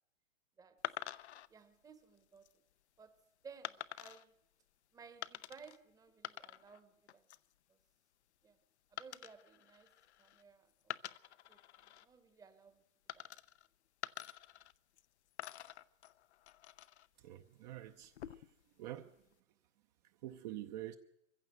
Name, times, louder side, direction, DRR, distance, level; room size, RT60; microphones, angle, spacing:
sound 1, 0.8-1.5 2.2-2.5 3.6-4.2 5.2-5.8 6.1-6.8 7.1-7.5 9.0-10.4 10.8-12.1 13.1-13.7 14.0-15.1 15.4-17.1 18.0-18.6, left 12 dB, 60° left, 0.8 m, -47 dB
voice 1, 1.5-2.6 3.0-4.3 4.9-7.3 7.7-7.8 8.4-8.6 8.9-9.9 10.2-11.0 11.5-12.8 13.1-13.3, right 5 dB, 10° right, 1.1 m, -58 dB
voice 2, 17.2-18.4 18.8-19.2 20.2-21.0, right 13 dB, 35° right, 0.8 m, -47 dB
23.0 x 15.0 x 7.8 m
hypercardioid pair, 130°, 37 cm